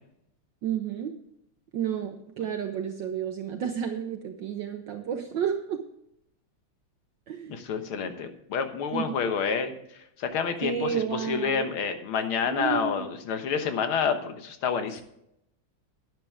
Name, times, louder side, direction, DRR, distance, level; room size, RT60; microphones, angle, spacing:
voice 1, 0.6-1.1 1.7-5.8 7.3-7.6 8.9-9.1 10.6-11.7 12.5-13.0, right 8 dB, 65° right, 5 dB, 1.4 m, -31 dB
voice 2, 7.5-9.7 10.2-15.0, left 6 dB, 75° left, 7 dB, 2.0 m, -28 dB
12.5 x 9.9 x 3.6 m, 0.78 s
omnidirectional pair, 2.3 m